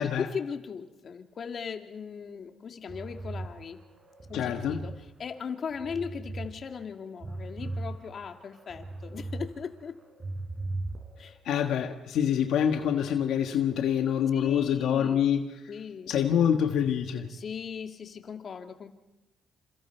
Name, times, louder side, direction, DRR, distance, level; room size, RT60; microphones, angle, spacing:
voice 1, 0.0-3.8 4.3-4.9 5.2-10.0 11.2-11.3 14.3-15.2 15.7-16.2 17.3-18.9, left 6 dB, 50° left, 5 dB, 2.1 m, -38 dB
sound 1, 2.9-5.0 5.4-6.5 6.9-9.5 9.8-11.3, right 2 dB, 35° right, 4.9 m, -38 dB
voice 2, 4.3-4.8 11.2-15.6 16.1-17.3, left 9 dB, 80° left, 5 dB, 1.5 m, -26 dB
28.5 x 27.5 x 4.5 m, 0.97 s
cardioid pair, 90°, 0 cm